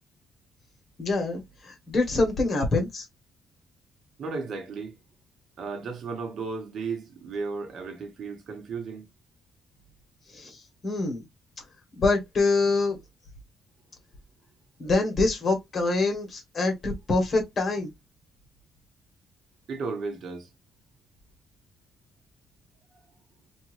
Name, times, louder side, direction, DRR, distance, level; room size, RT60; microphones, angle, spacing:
voice 1, 1.0-3.1 10.3-11.2 12.0-13.0 14.8-17.9, left 3 dB, 45° left, 1.3 m, -25 dB
voice 2, 4.2-4.9 5.6-9.1 19.7-20.5, right 4 dB, 60° right, 1.1 m, -34 dB
2.7 x 2.5 x 3.1 m
cardioid pair, 90°, 0 cm